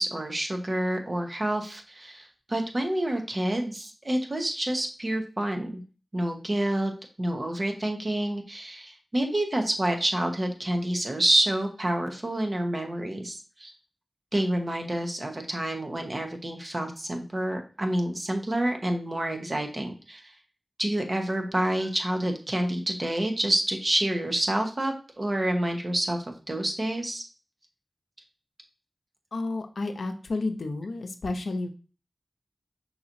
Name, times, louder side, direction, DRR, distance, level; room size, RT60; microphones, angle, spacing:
voice 1, 0.0-5.8 6.1-6.9 7.2-13.7 14.3-20.3 20.8-27.2, right 1 dB, 40° right, 4 dB, 0.9 m, -28 dB
voice 2, 29.3-31.7, left 2 dB, 80° left, 5 dB, 0.6 m, -31 dB
5.7 x 2.9 x 2.6 m, 0.36 s
cardioid pair, 50°, 0 cm